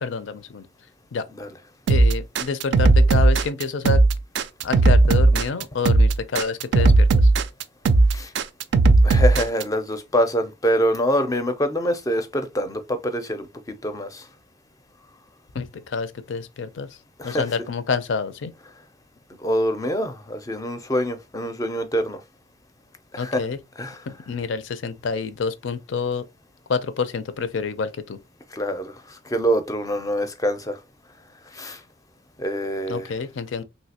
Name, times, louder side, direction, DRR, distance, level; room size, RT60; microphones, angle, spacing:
voice 1, 0.0-0.7 1.1-1.2 1.9-4.0 4.6-7.1 15.5-16.9 17.2-18.5 23.2-23.6 24.3-26.2 26.7-28.2 32.9-33.6, left 5 dB, 75° left, 0.5 m, -27 dB
sound 1, 1.9-9.6, right 3 dB, 65° right, 0.3 m, -16 dB
voice 2, 9.0-14.2 17.2-17.5 19.4-22.2 23.1-23.4 23.8-24.0 28.5-30.8 31.5-31.8 32.4-33.1, equal, 20° left, 0.4 m, -25 dB
3.2 x 2.7 x 2.8 m
head